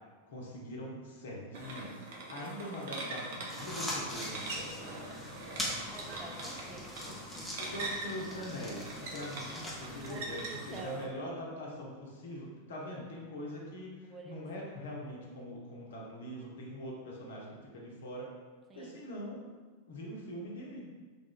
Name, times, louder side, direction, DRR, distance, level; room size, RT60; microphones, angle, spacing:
voice 1, 0.3-4.8 7.4-18.3 18.7-19.5 19.9-20.9, equal, 60° left, -2 dB, 0.8 m, -43 dB
sound 1, 1.5-11.0, right 2 dB, 55° right, 0.6 m, -43 dB
sound 2, 3.5-10.8, left 1 dB, 5° left, 0.7 m, -42 dB
voice 2, 5.2-7.5 10.0-11.1 14.1-14.7 18.7-19.0, right 4 dB, 20° right, 1 dB, 0.4 m, -48 dB
3.4 x 2.5 x 3.7 m, 1.4 s
figure-of-eight pair, 90°, 0 cm